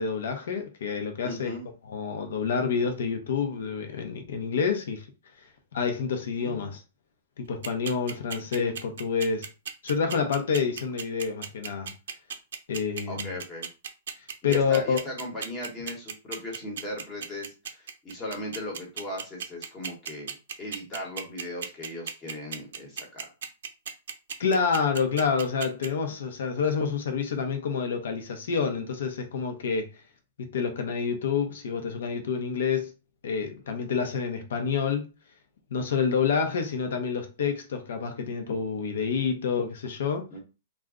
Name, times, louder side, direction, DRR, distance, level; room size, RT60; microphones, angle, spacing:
voice 1, 0.0-1.5 1.9-5.0 5.7-6.8 7.4-9.5 9.8-11.9 12.7-13.3 14.4-15.0 24.4-29.9 30.4-32.9 33.2-35.1 35.7-40.3, left 6 dB, 75° left, 0.7 m, -28 dB
voice 2, 1.2-1.7 6.4-6.7 13.1-13.7 14.4-23.3 40.3-40.4, left 1 dB, 15° left, 0.9 m, -38 dB
sound 1, 7.6-25.9, right 7 dB, 75° right, 0.5 m, -35 dB
2.4 x 2.1 x 3.6 m
hypercardioid pair, 160°, 0 cm